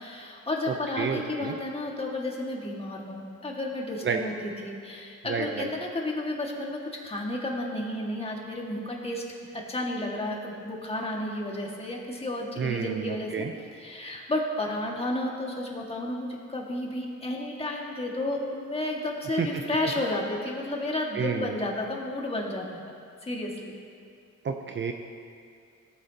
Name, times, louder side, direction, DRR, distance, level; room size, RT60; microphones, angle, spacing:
voice 1, 0.0-9.2 9.5-13.4 13.8-22.8 23.2-23.7, left 1 dB, 20° left, -2 dB, 2.0 m, -32 dB
voice 2, 0.7-1.5 4.0-4.2 5.3-5.7 12.6-13.5 19.4-19.5 21.1-21.5 24.4-24.9, right 6 dB, 40° right, 4 dB, 0.7 m, -30 dB
18.0 x 8.5 x 2.9 m, 2.3 s
cardioid pair, 90°, 30 cm